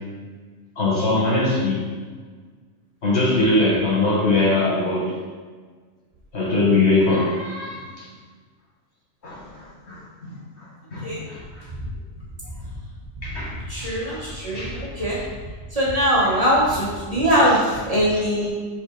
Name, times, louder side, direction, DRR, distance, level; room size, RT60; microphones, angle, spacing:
voice 1, 0.8-1.8 3.0-5.2 6.3-8.1 9.2-11.6 13.2-14.8 18.1-18.2, left 2 dB, 55° left, -6 dB, 1.6 m, -22 dB
voice 2, 13.7-15.2 15.7-18.5, equal, 30° right, -8 dB, 1.6 m, -21 dB
5.7 x 5.5 x 3.3 m, 1.5 s
omnidirectional pair, 1.4 m